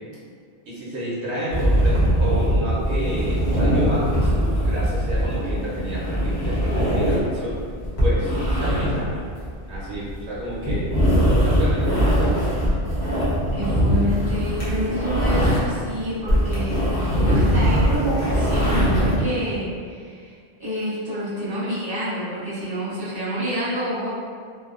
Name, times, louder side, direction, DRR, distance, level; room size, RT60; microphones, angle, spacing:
voice 1, 0.7-7.5 8.0-8.4 8.6-9.2 9.7-10.9 11.4-12.3, right 1 dB, 85° right, -8 dB, 1.0 m, -30 dB
sound 1, 1.5-15.8 16.1-19.2, equal, 45° left, 0.9 m, -21 dB
voice 2, 13.5-16.9 17.2-20.3 20.6-24.1, equal, 25° right, -13 dB, 0.8 m, -28 dB
2.8 x 2.0 x 2.4 m, 2.1 s
omnidirectional pair, 1.1 m